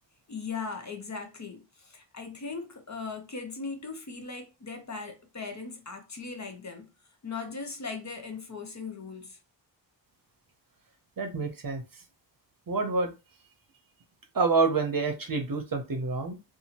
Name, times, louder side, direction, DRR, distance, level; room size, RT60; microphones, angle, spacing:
voice 1, 0.3-6.9 7.2-9.4, left 4 dB, 40° left, 0.6 m, -39 dB
voice 2, 11.2-11.8 12.7-13.1 14.3-16.3, right 4 dB, 45° right, 0.7 m, -27 dB
2.7 x 2.5 x 2.8 m
wide cardioid pair, 70°, 47 cm